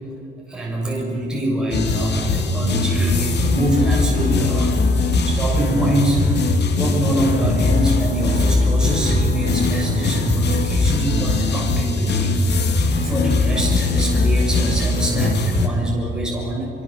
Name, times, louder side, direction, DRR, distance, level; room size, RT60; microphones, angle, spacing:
voice 1, 0.5-4.8 5.2-6.3 6.7-16.7, right 1 dB, 5° right, -3 dB, 6.9 m, -25 dB
sound 1, 1.7-15.7, left 2 dB, 60° left, 2.9 m, -20 dB
25.5 x 23.0 x 7.6 m, 2.9 s
cardioid pair, 90°, 20 cm